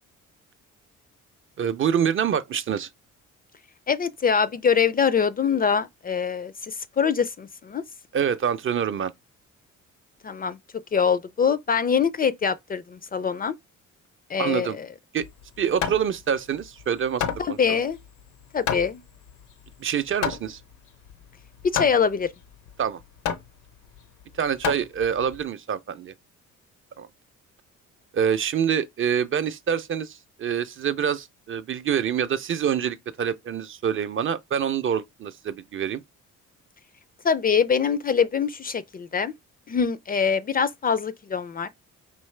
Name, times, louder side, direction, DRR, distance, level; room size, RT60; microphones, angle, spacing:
voice 1, 1.6-2.9 8.1-9.1 14.4-14.8 15.1-15.2 15.6-17.8 19.8-20.6 22.8-23.0 24.4-26.1 27.0-27.1 28.1-36.0, right 8 dB, 45° right, 0.5 m, -26 dB
voice 2, 3.9-7.8 10.2-10.6 10.9-13.5 14.3-14.9 17.4-18.0 18.5-19.0 21.6-22.3 37.2-39.3 39.7-41.7, left 6 dB, 30° left, 0.4 m, -24 dB
Hammer, 15.2-25.4, left 8 dB, 85° left, 0.8 m, -32 dB
4.6 x 2.8 x 3.2 m
cardioid pair, 90°, 30 cm